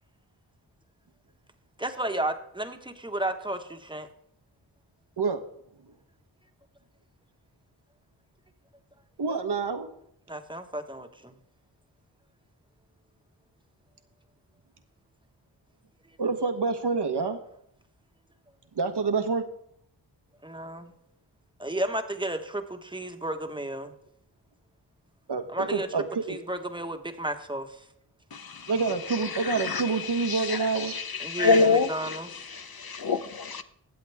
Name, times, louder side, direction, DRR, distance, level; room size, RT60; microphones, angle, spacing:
voice 1, 1.8-4.1 10.3-11.3 20.4-20.9 21.6-23.9 25.5-25.9 26.3-27.7 31.2-32.3, right 1 dB, 10° right, 1.4 m, -32 dB
voice 2, 9.2-9.9 16.2-17.4 18.7-19.4 25.3-26.4 28.7-30.9, right 4 dB, 60° right, 1.3 m, -27 dB
voice 3, 28.3-28.7 29.1-33.6, left 4 dB, 50° left, 1.0 m, -27 dB
21.5 x 7.8 x 3.6 m
cardioid pair, 50°, 45 cm